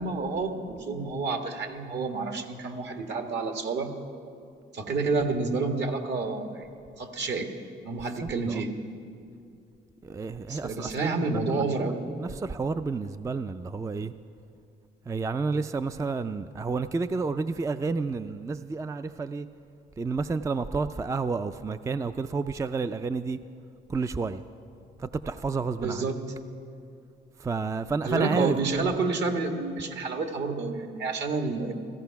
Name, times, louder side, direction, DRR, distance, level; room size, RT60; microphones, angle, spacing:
voice 1, 0.0-3.9 4.7-6.7 7.0-7.5 7.8-8.7 10.5-12.0 25.8-26.2 28.0-31.7, right 3 dB, 60° right, 5 dB, 1.6 m, -29 dB
voice 2, 10.0-14.1 15.1-19.5 20.0-23.4 23.9-24.4 25.0-26.1 27.4-28.6, right 4 dB, 15° right, 11 dB, 0.3 m, -30 dB
16.0 x 14.0 x 5.8 m, 2.5 s
cardioid pair, 90°, 20 cm